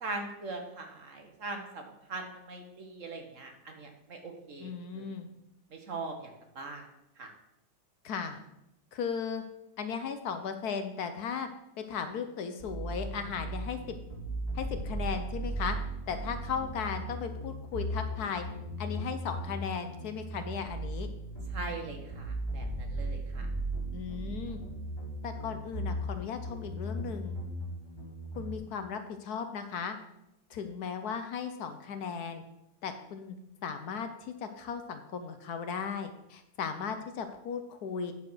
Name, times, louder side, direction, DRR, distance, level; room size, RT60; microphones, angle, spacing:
voice 1, 0.0-5.1 5.7-6.9 7.2-7.3 21.5-23.5, right 3 dB, 50° right, 3 dB, 1.4 m, -41 dB
voice 2, 4.6-5.3 8.0-8.4 8.9-9.4 9.8-11.5 11.8-14.0 14.5-15.8 16.1-18.5 18.8-21.1 23.9-24.6 25.2-27.4 28.4-30.0 30.5-32.4 32.8-33.4 33.6-38.1, left 6 dB, 65° left, 8 dB, 1.2 m, -36 dB
sound 1, 12.6-28.6, right 1 dB, 15° left, 2.5 m, -37 dB
9.4 x 4.6 x 6.1 m, 0.85 s
omnidirectional pair, 1.9 m